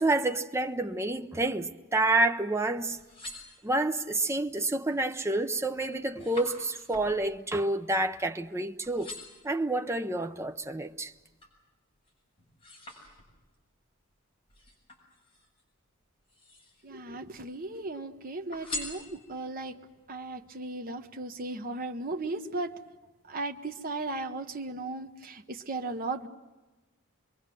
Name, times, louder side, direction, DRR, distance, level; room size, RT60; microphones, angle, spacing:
voice 1, 0.0-3.0 3.6-9.1 9.4-11.1, right 2 dB, 15° right, 0.8 m, -28 dB
sound 1, 3.0-4.1 4.7-5.1 5.4-8.5 8.8-9.5 10.1-11.6 12.0-13.6 14.5-15.6 16.2-17.0 17.3-18.0 18.5-19.6 20.1-20.2, left 1 dB, 25° left, 7.2 m, -45 dB
voice 2, 16.8-19.8 20.1-22.7 23.3-26.3, right 2 dB, 45° right, 1.0 m, -36 dB
26.0 x 22.5 x 7.6 m
head